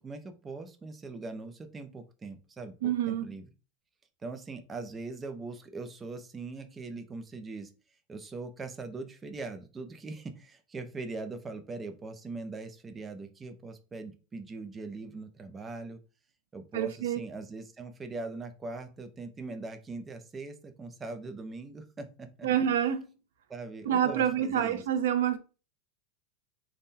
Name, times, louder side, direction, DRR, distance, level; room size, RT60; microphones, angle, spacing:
voice 1, 0.0-3.5 4.2-7.7 8.1-16.0 16.5-22.5 23.5-24.8, right 3 dB, 10° right, 0.4 m, -41 dB
voice 2, 2.8-3.2 16.7-17.2 22.4-23.1 23.9-25.4, right 9 dB, 90° right, 0.5 m, -27 dB
3.6 x 2.1 x 4.0 m
supercardioid pair, 175°, 0 cm